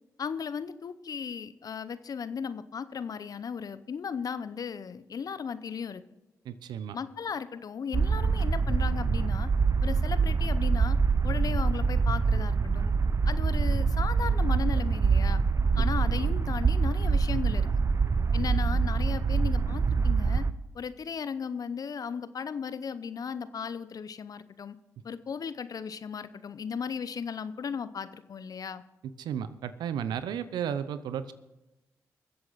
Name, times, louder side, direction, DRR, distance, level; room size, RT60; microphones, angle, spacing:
voice 1, 0.2-6.0 6.9-9.5 9.8-11.0 11.2-12.9 13.3-15.4 15.8-17.7 18.3-20.5 20.7-24.8 25.0-28.8, left 6 dB, 60° left, 15 dB, 0.7 m, -36 dB
voice 2, 6.5-7.0 16.1-16.3 29.2-31.3, right 8 dB, 80° right, 14 dB, 0.7 m, -34 dB
sound 1, 7.9-20.5, right 5 dB, 45° right, 0.6 m, -25 dB
22.0 x 7.8 x 4.0 m, 0.97 s
supercardioid pair, 40°, 7 cm